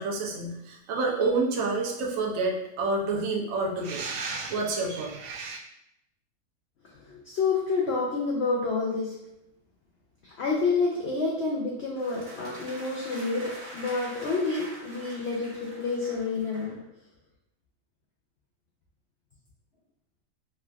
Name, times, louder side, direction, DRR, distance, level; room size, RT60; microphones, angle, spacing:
voice 1, 0.0-5.6, right 3 dB, 65° right, -1 dB, 0.9 m, -29 dB
voice 2, 7.0-9.2 10.2-16.8, left 4 dB, 80° left, -2 dB, 0.5 m, -29 dB
sound 1, 12.0-16.8, right 1 dB, 35° right, 0.9 m, -44 dB
3.3 x 2.4 x 2.3 m, 0.83 s
omnidirectional pair, 1.6 m